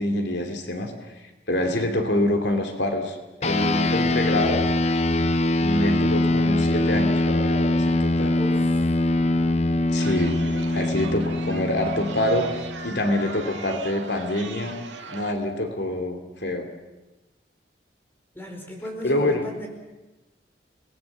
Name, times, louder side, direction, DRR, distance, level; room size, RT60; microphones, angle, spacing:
voice 1, 0.0-4.6 5.6-8.3 9.9-10.4 10.7-14.8 15.1-16.7 19.0-19.5, left 1 dB, 70° left, 5 dB, 2.8 m, -26 dB
sound 1, 3.4-13.2, left 2 dB, 35° left, 0.7 m, -23 dB
voice 2, 8.4-8.8 18.3-19.7, equal, 10° left, 2 dB, 4.8 m, -36 dB
Chatter, 10.0-15.3, right 4 dB, 80° right, 1.8 m, -39 dB
28.5 x 20.5 x 7.3 m, 1.1 s
head